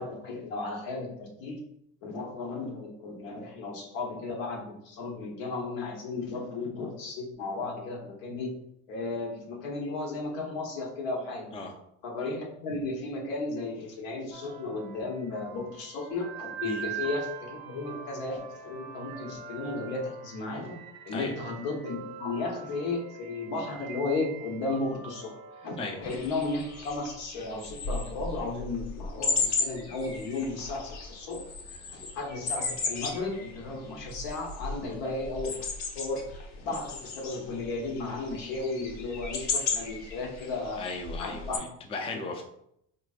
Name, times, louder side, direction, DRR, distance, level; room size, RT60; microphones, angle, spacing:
voice 1, 0.0-1.6 2.0-8.5 8.9-11.5 12.0-31.4 31.7-35.6 35.9-40.8 41.2-41.6 42.1-42.2, left 3 dB, 85° left, 0 dB, 1.1 m, -34 dB
sound 1, 14.3-27.0, right 8 dB, 85° right, 0.7 m, -43 dB
sound 2, 26.0-41.6, left 4 dB, 60° left, 0.9 m, -35 dB
voice 2, 40.8-42.4, left 3 dB, 20° left, 3 dB, 0.4 m, -36 dB
4.0 x 3.0 x 2.4 m, 0.75 s
cardioid pair, 125°, 31 cm